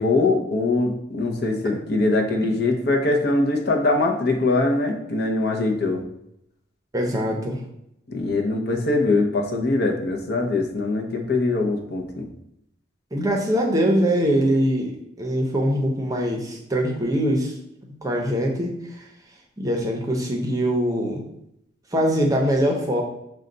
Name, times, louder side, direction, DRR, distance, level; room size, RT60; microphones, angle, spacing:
voice 1, 0.0-6.0 8.1-12.3, left 2 dB, 55° left, 2 dB, 0.7 m, -22 dB
voice 2, 6.9-7.6 13.1-17.5 18.0-19.1 19.6-21.2 21.9-23.0, equal, 20° right, 1 dB, 0.6 m, -23 dB
6.3 x 2.2 x 3.8 m, 0.79 s
head